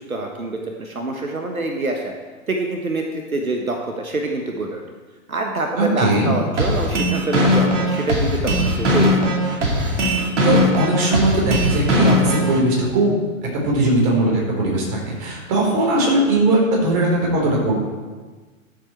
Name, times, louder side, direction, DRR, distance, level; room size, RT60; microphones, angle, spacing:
voice 1, 0.0-2.1 2.5-3.0 3.3-4.8 5.3-9.3, right 2 dB, 80° right, 2 dB, 1.3 m, -25 dB
voice 2, 5.8-6.3 10.4-13.2 13.6-17.8, right 2 dB, 35° right, -2 dB, 3.7 m, -19 dB
sound 1, 6.6-12.6, equal, 55° right, 2.6 m, -19 dB
12.5 x 7.5 x 4.5 m, 1.4 s
figure-of-eight pair, 110°, 42 cm